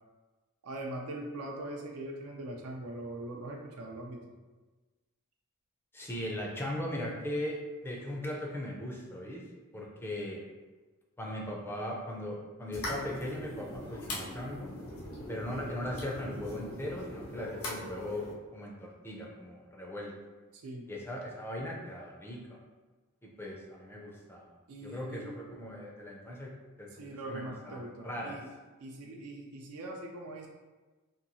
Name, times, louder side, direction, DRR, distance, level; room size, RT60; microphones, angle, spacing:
voice 1, 0.6-4.2 15.5-15.7 20.5-20.9 24.7-25.4 27.0-28.5 28.8-30.5, right 1 dB, 75° right, 0 dB, 0.4 m, -41 dB
voice 2, 5.9-9.4 9.7-10.4 11.2-14.8 15.3-18.3 18.5-20.1 20.9-22.4 23.4-24.4 24.8-26.5 26.8-28.4, left 1 dB, 10° left, -2 dB, 0.4 m, -38 dB
sound 1, 12.7-18.3, left 1 dB, 70° left, 0.6 m, -41 dB
2.9 x 2.3 x 2.6 m, 1.3 s
head